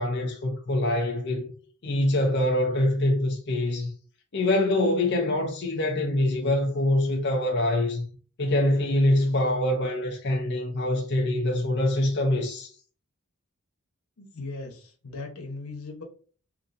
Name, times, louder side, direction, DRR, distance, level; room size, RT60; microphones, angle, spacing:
voice 1, 0.0-1.4 1.8-3.9 4.3-8.0 8.4-12.7, left 1 dB, 55° left, 0.6 m, -24 dB
voice 2, 14.2-16.0, left 3 dB, 90° left, 1.0 m, -38 dB
3.9 x 2.7 x 2.6 m
head